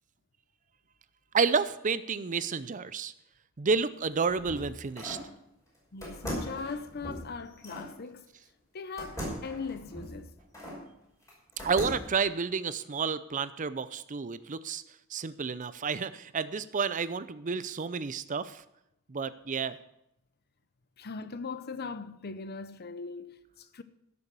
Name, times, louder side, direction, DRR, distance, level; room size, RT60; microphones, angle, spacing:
voice 1, 1.3-3.1 3.6-5.2 11.6-14.8 15.1-18.6 19.1-19.8, right 5 dB, 40° right, 0.5 m, -30 dB
sound 1, 3.9-5.3 6.0-7.9 9.0-10.8 11.3-12.2, equal, 15° left, 5.5 m, -39 dB
voice 2, 5.9-8.3 8.7-10.3 21.0-23.8, left 4 dB, 50° left, 0.7 m, -40 dB
15.5 x 7.0 x 6.8 m
head